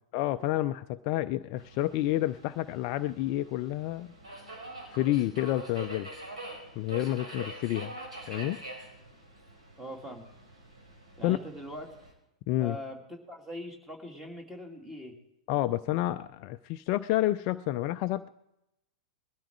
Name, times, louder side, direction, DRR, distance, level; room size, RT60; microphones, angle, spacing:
voice 1, 0.1-4.1 4.9-6.1 6.7-7.9 8.3-8.6 11.2-11.4 12.5-12.8 15.5-18.3, left 15 dB, 40° left, 12 dB, 0.4 m, -29 dB
Subway metro underground, 1.6-12.1, right 1 dB, 70° right, 4.7 m, -45 dB
voice 2, 9.8-10.2 11.2-11.9 12.6-15.2, equal, 10° right, 3 dB, 2.7 m, -42 dB
21.0 x 12.5 x 4.7 m, 0.86 s
figure-of-eight pair, 95°, 3 cm